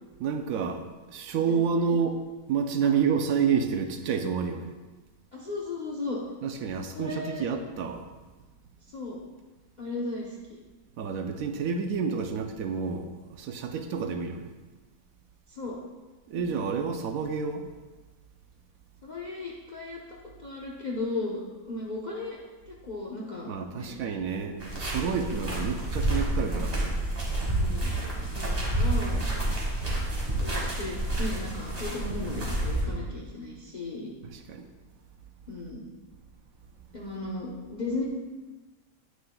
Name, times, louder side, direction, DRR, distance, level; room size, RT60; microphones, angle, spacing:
voice 1, 0.2-2.2 2.5-4.8 6.4-8.1 11.0-14.5 16.3-17.7 23.5-26.9 29.1-29.6 34.3-34.7, right 6 dB, 75° right, 6 dB, 1.1 m, -29 dB
voice 2, 1.5-2.0 2.8-2.9 5.3-6.2 6.9-7.5 8.9-9.2 9.8-10.6 15.5-15.8 16.3-16.4 19.0-20.0 20.4-22.4 22.7-24.0 25.1-25.4 27.4-27.9 28.3-29.3 30.4-34.1 35.5-35.9 36.9-38.0, left 2 dB, 35° left, -3 dB, 0.9 m, -36 dB
sound 1, 24.6-32.9, right 1 dB, 25° right, 1.9 m, -29 dB
9.6 x 9.6 x 2.3 m, 1.2 s
omnidirectional pair, 1.5 m